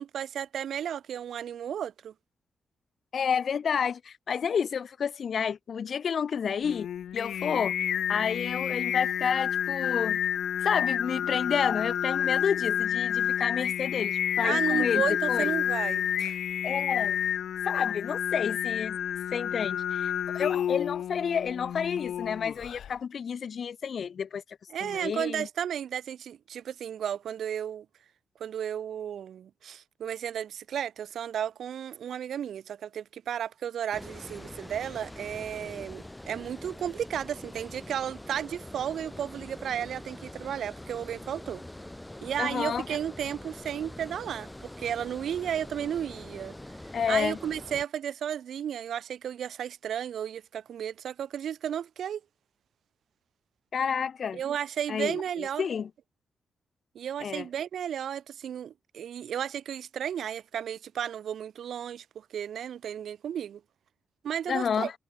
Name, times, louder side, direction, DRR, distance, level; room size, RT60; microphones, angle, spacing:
voice 1, 0.0-2.1 14.4-16.4 24.7-27.9 28.4-41.6 42.2-46.6 47.1-52.2 54.3-55.7 56.9-63.6 64.2-64.9, right 9 dB, 80° right, 2.2 m, -33 dB
voice 2, 3.1-6.9 7.1-10.2 10.6-15.5 16.6-17.2 17.6-19.0 19.3-24.4 24.8-25.5 42.4-42.9 46.9-47.4 53.7-54.4 54.9-55.9 57.2-57.5 64.5-64.9, left 7 dB, 55° left, 1.1 m, -30 dB
Singing, 6.6-22.9, left 9 dB, 85° left, 1.2 m, -29 dB
Water, 33.9-47.9, left 1 dB, 10° left, 3.8 m, -44 dB
cardioid pair, 115°, 0 cm